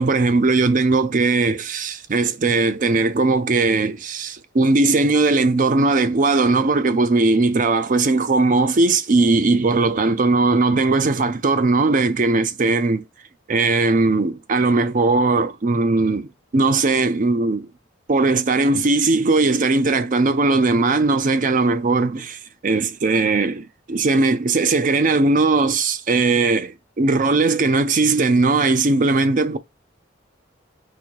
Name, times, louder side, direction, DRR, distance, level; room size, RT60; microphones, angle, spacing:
voice 1, 0.0-13.0 13.5-17.7 18.1-29.6, right 3 dB, 40° right, 0.5 m, -19 dB
4.2 x 2.6 x 4.4 m
head